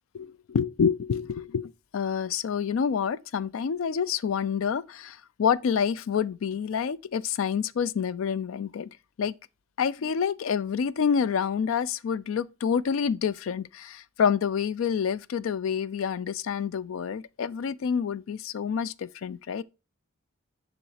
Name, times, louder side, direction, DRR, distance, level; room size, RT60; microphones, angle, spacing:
voice 1, 0.1-8.9 9.2-9.3 9.8-19.6, left 7 dB, 70° left, 0.4 m, -28 dB
6.9 x 3.2 x 4.7 m
head